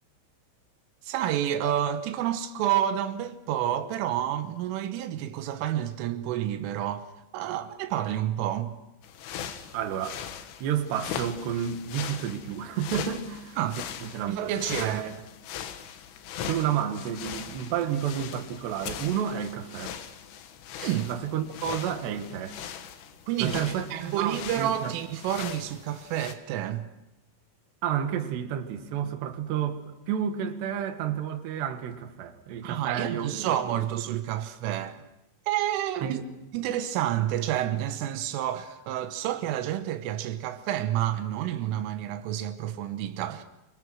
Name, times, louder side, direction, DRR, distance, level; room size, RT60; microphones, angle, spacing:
voice 1, 1.0-7.1 7.3-8.8 13.6-13.8 14.3-15.0 20.8-21.1 23.3-23.6 23.9-26.9 32.6-35.0 35.5-36.2 36.5-43.4, right 11 dB, 90° right, 3.7 m, -29 dB
sound 1, 9.0-26.3, left 9 dB, 90° left, 4.1 m, -40 dB
voice 2, 9.7-10.2 10.6-13.6 14.0-14.4 14.8-15.1 16.4-20.0 21.0-22.6 23.4-24.9 27.8-33.8 36.0-36.3, right 9 dB, 65° right, 3.6 m, -31 dB
28.0 x 25.0 x 6.3 m
omnidirectional pair, 5.5 m